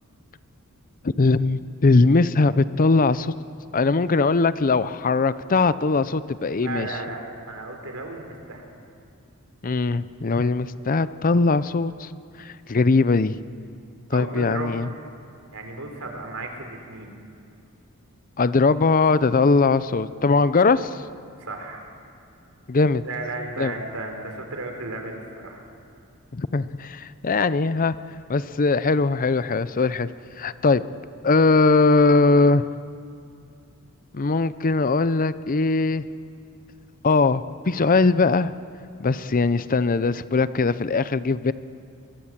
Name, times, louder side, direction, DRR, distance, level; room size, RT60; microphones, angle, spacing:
voice 1, 1.0-3.3 3.7-6.9 9.6-12.1 12.4-13.4 14.1-14.9 18.4-21.0 22.7-23.0 23.6-23.7 26.3-28.0 28.3-30.1 30.4-30.8 31.2-32.7 34.1-36.0 37.0-38.5 39.0-41.5, left 3 dB, 40° left, 15 dB, 0.6 m, -20 dB
voice 2, 6.5-7.2 7.5-8.7 14.1-14.9 15.5-17.2 21.4-21.9 23.0-25.6, right 2 dB, 70° right, 3 dB, 4.0 m, -34 dB
24.0 x 23.5 x 7.5 m, 2.5 s
head